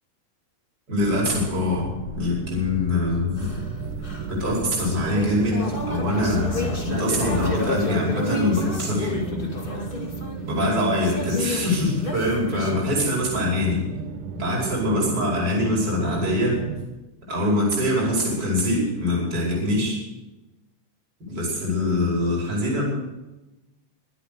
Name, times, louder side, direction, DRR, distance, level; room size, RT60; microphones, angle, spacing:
voice 1, 0.9-3.6 4.3-9.5 9.7-9.9 10.4-13.8 14.4-16.6 17.3-20.0 21.3-22.8, left 1 dB, 30° right, -3 dB, 5.6 m, -24 dB
sound 1, 1.0-7.6, right 3 dB, 50° right, 3.5 m, -36 dB
sound 2, 3.4-12.8, left 2 dB, 20° left, 1.6 m, -31 dB
sound 3, 3.4-16.8, right 7 dB, 80° right, 2.5 m, -35 dB
23.0 x 8.3 x 6.8 m, 1.0 s
omnidirectional pair, 3.6 m